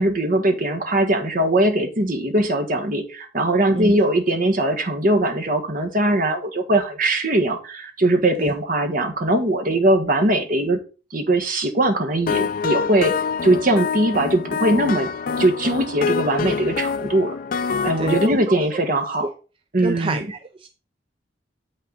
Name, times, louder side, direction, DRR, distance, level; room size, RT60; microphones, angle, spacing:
voice 1, 0.0-10.8 11.1-13.1 13.4-15.1 15.4-17.3 17.8-19.3 19.7-20.2, right 1 dB, 50° right, 5 dB, 1.3 m, -20 dB
sound 1, 12.3-18.3, left 5 dB, 50° left, 0.4 m, -26 dB
voice 2, 18.0-18.6 19.2-19.3 19.8-20.7, right 2 dB, 30° right, 8 dB, 0.4 m, -27 dB
7.9 x 5.6 x 3.8 m, 0.36 s
head